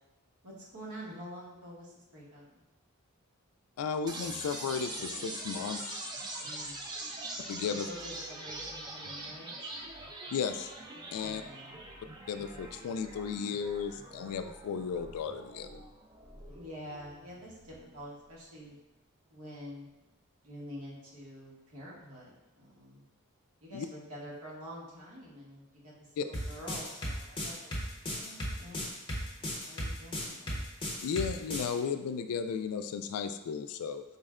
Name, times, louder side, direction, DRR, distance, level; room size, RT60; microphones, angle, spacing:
voice 1, 0.4-2.6 6.4-6.8 7.7-9.7 11.2-11.7 16.4-18.8 19.3-19.9 20.4-22.3 22.6-23.0 23.6-27.7 28.1-28.9 29.4-30.6, equal, 85° right, -5 dB, 1.2 m, -47 dB
voice 2, 3.8-6.0 7.5-7.9 10.3-10.7 11.1-11.4 12.3-15.8 23.7-23.9 26.2-26.3 31.0-34.0, left 6 dB, 90° left, 10 dB, 0.3 m, -34 dB
sound 1, 4.1-18.0, right 2 dB, 20° right, 0.4 m, -43 dB
sound 2, 26.3-31.7, equal, 25° left, 0.8 m, -35 dB
4.3 x 2.1 x 3.5 m, 1.0 s
head